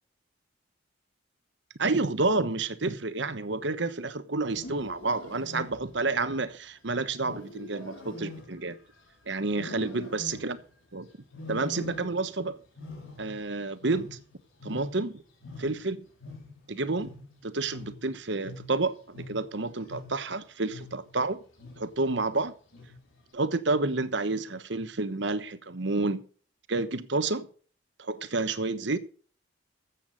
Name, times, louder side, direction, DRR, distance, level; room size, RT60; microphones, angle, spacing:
voice 1, 1.8-8.8 9.3-10.6 10.9-11.1 11.5-12.6 13.2-14.2 14.6-15.1 15.6-16.0 16.7-17.1 17.4-21.4 21.8-22.5 23.3-26.2 26.7-27.5 28.0-29.0, right 3 dB, 65° right, 1.1 m, -29 dB
Wild animals, 4.4-6.1 7.2-9.1 9.5-10.7 11.3-12.4 12.6-15.2 15.4-20.3 20.7-21.1 21.6-22.0 22.7-23.2, left 2 dB, 85° left, 4.3 m, -44 dB
13.5 x 8.4 x 5.2 m
head